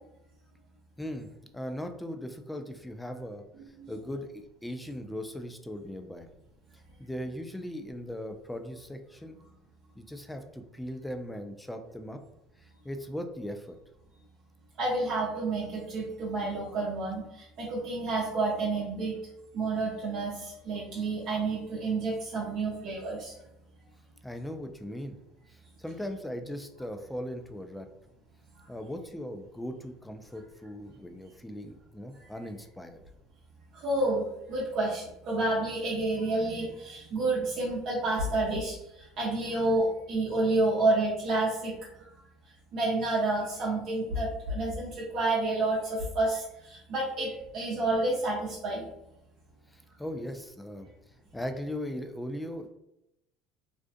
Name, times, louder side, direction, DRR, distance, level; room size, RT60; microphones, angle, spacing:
voice 1, 1.0-1.3 1.5-3.4 3.9-6.3 7.0-9.4 10.0-12.2 12.6-13.8 24.2-25.2 25.5-27.9 28.7-33.0 49.7-50.9 51.3-52.7, equal, 5° left, 6 dB, 0.3 m, -39 dB
voice 2, 14.8-19.2 19.5-23.3 32.1-32.3 33.7-41.7 42.7-48.9, right 2 dB, 60° right, -5 dB, 0.7 m, -29 dB
2.5 x 2.4 x 2.3 m, 0.86 s
hypercardioid pair, 80°, 0 cm